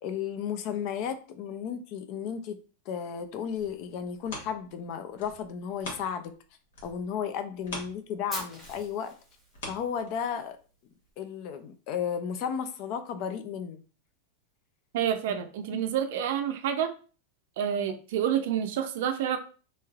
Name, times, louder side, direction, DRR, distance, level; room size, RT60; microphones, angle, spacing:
voice 1, 0.0-2.6 2.9-6.3 6.8-9.1 9.7-10.6 11.2-13.8, left 7 dB, 35° left, 0.3 m, -34 dB
sound 1, 3.4-6.4 6.7-10.5 11.0-11.1, left 1 dB, 85° left, 1.3 m, -44 dB
Fire, 8.3-10.4, equal, 5° left, 1.0 m, -42 dB
voice 2, 14.9-16.9 17.6-19.4, right 9 dB, 55° right, 0.5 m, -28 dB
3.1 x 2.8 x 2.3 m
supercardioid pair, 170°, 0 cm